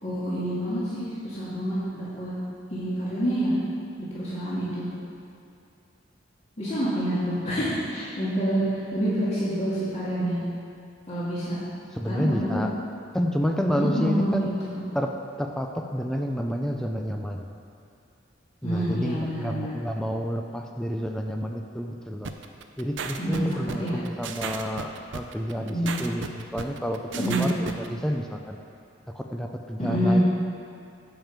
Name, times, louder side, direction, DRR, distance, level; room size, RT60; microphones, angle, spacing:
voice 1, 0.0-2.3 2.7-3.5 4.1-4.9 6.6-8.6 8.9-10.4 11.1-11.6 12.0-12.6 13.8-14.4 14.7-14.8 18.6-19.7 23.2-23.5 23.8-24.0 25.6-26.0 27.1-27.5 29.8-30.2, equal, 35° left, -10 dB, 2.1 m, -27 dB
voice 2, 11.9-12.7 13.1-14.6 14.9-17.5 18.6-22.3 22.8-27.0 27.3-28.6 29.1-30.2, equal, 5° left, 2 dB, 0.5 m, -29 dB
sound 1, 22.2-27.9, right 5 dB, 70° right, 0.6 m, -35 dB
9.0 x 5.4 x 7.3 m, 2.7 s
head